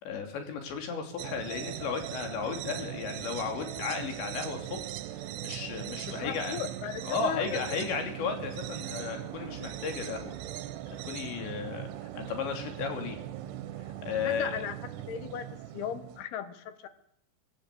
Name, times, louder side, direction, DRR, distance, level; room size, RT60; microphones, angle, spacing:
voice 1, 0.0-4.8 5.4-6.6 7.0-10.4 10.9-11.9 12.2-13.2 14.0-14.6, left 5 dB, 90° left, 5 dB, 5.4 m, -34 dB
sound 1, 1.2-16.2, right 12 dB, 75° right, 3.1 m, -40 dB
voice 2, 6.1-7.6 14.2-16.9, left 9 dB, 70° left, 11 dB, 3.2 m, -37 dB
24.0 x 15.0 x 8.4 m, 0.76 s
omnidirectional pair, 4.9 m